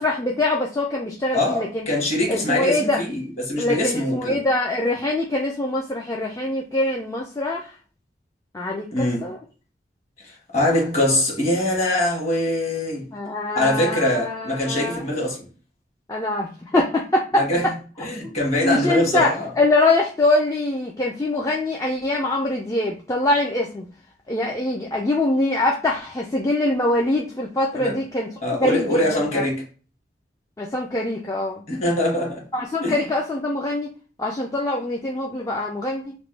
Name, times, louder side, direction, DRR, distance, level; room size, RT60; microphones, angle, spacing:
voice 1, 0.0-1.9 2.3-3.0 3.6-7.7 8.5-9.4 13.1-15.0 16.1-17.7 18.2-18.3 18.6-19.3 19.6-23.9 24.3-28.3 28.6-29.4 30.6-31.6 32.5-33.9 34.2-36.1, left 2 dB, 20° left, 0.4 m, -23 dB
voice 2, 1.3-4.4 8.9-9.2 10.5-13.1 13.5-15.4 17.3-17.7 18.0-19.5 27.7-28.0 28.4-29.6 31.7-32.4 32.8-33.0, left 1 dB, 40° left, 1.3 m, -23 dB
3.0 x 2.1 x 3.2 m
head